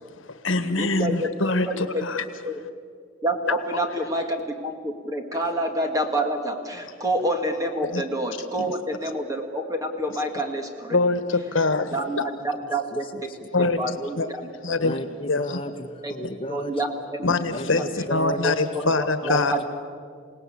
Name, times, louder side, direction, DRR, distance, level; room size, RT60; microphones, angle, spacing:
voice 1, 0.2-2.2 3.5-3.6 7.9-8.0 8.6-8.7 10.9-12.2 13.5-14.3 14.6-15.0 15.3-15.6 17.2-19.5, left 3 dB, 80° left, 10 dB, 1.4 m, -24 dB
voice 2, 0.8-1.3 1.7-2.0 2.4-2.6 3.2-11.0 11.9-12.2 12.7-13.3 13.6-14.2 14.7-14.8 16.0-16.1 16.5-16.9 17.7-17.8 18.4-19.1 19.5-19.6, right 1 dB, 15° right, 4 dB, 2.1 m, -27 dB
voice 3, 13.1-13.7 14.8-16.8 17.5-18.4 19.2-19.6, equal, 25° left, 4 dB, 1.7 m, -33 dB
27.5 x 18.5 x 8.7 m, 2.1 s
head